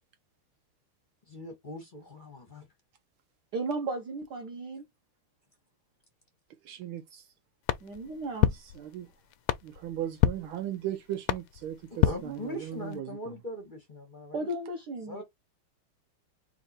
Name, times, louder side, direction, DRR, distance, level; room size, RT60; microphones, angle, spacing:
voice 1, 1.3-2.7 11.9-14.5 15.1-15.2, left 1 dB, 30° left, 0.9 m, -40 dB
voice 2, 3.5-4.8 7.8-8.5 14.3-15.2, right 2 dB, 55° right, 1.6 m, -35 dB
voice 3, 6.6-7.3 8.7-9.1 9.6-13.3, right 11 dB, 75° right, 1.4 m, -37 dB
sound 1, 7.6-13.0, left 13 dB, 90° left, 1.5 m, -31 dB
4.4 x 2.8 x 4.2 m
omnidirectional pair, 2.4 m